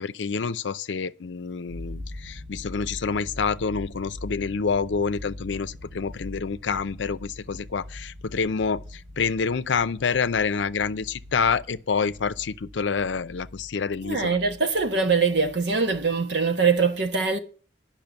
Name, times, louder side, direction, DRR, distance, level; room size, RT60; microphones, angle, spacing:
voice 1, 0.0-8.8 9.2-14.4, left 5 dB, 80° left, 0.5 m, -27 dB
sound 1, 1.7-16.2, left 1 dB, 50° right, 1.2 m, -42 dB
voice 2, 14.0-17.4, right 4 dB, 70° right, 1.3 m, -23 dB
10.5 x 5.9 x 7.0 m
head